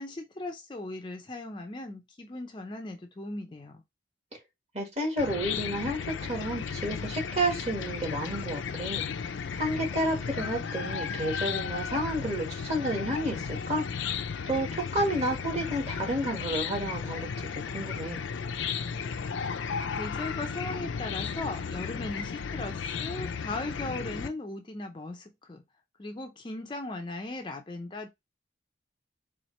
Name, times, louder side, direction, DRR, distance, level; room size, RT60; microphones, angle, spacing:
voice 1, 0.0-3.8 19.9-25.6 26.0-28.1, left 2 dB, 25° left, 0.4 m, -38 dB
voice 2, 4.7-13.8 14.5-18.2, right 1 dB, 35° right, 1.5 m, -31 dB
Chicken rooster / Cricket, 5.2-24.3, left 6 dB, 85° left, 0.4 m, -34 dB
4.2 x 2.5 x 3.1 m
head